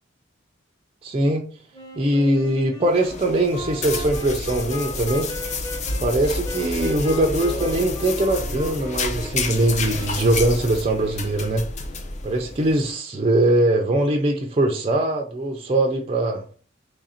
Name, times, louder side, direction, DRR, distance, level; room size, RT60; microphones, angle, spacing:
voice 1, 1.0-1.4 2.0-5.3 6.0-11.6 12.2-16.4, right 1 dB, 30° right, 0.4 m, -21 dB
Wind instrument woodwind instrument, 1.7-11.2, left 1 dB, 20° left, 0.9 m, -37 dB
sound 1, 2.9-12.9, left 3 dB, 35° left, 0.4 m, -30 dB
3.2 x 2.5 x 4.2 m
head